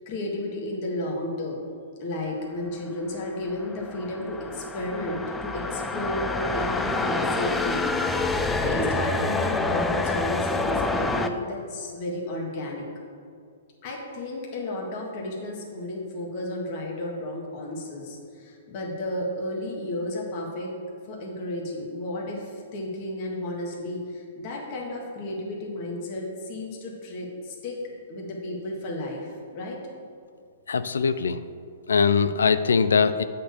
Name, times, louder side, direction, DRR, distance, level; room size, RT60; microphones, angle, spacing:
voice 1, 0.1-1.6 2.0-12.9 13.8-20.7 21.1-27.8 28.1-29.3 29.5-29.8, left 1 dB, 40° left, -2 dB, 1.7 m, -32 dB
sound 1, 3.3-11.3, left 3 dB, 10° left, 0.4 m, -27 dB
voice 2, 30.7-31.4 31.9-33.2, left 5 dB, 90° left, 12 dB, 0.4 m, -21 dB
7.6 x 4.4 x 6.7 m, 2.3 s
hypercardioid pair, 140°, 0 cm